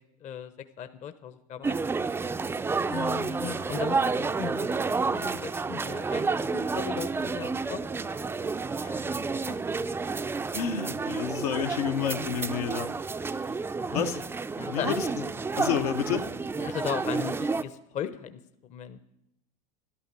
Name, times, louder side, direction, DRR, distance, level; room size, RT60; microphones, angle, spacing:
voice 1, 0.2-1.8 2.9-8.5 8.8-9.0 9.5-9.6 13.3-14.1 14.6-15.0 16.6-19.0, left 8 dB, 40° left, 11 dB, 0.9 m, -38 dB
sound 1, 1.6-17.6, right 4 dB, 10° right, 0.4 m, -30 dB
voice 2, 10.5-12.9 13.9-14.1 14.6-15.1 15.6-16.3, left 8 dB, 80° left, 6 dB, 1.2 m, -29 dB
13.0 x 12.0 x 6.8 m, 0.81 s
hypercardioid pair, 100°, 20 cm